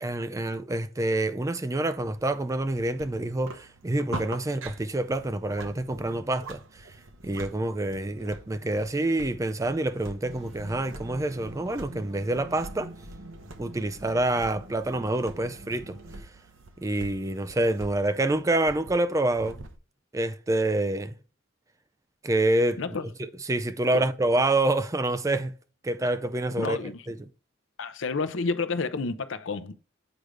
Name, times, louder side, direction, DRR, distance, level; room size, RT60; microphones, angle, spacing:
voice 1, 0.0-6.9 7.2-12.9 13.6-16.0 16.8-19.6 20.1-21.1 22.2-22.8 23.2-25.5 25.8-27.2, right 2 dB, 15° right, 0.4 m, -27 dB
sound 1, 2.0-19.8, right 2 dB, 85° right, 0.8 m, -45 dB
sound 2, 10.2-16.2, right 1 dB, 65° right, 1.4 m, -45 dB
voice 2, 26.6-27.0 27.8-29.7, left 4 dB, 75° left, 0.6 m, -30 dB
7.9 x 5.0 x 3.2 m
head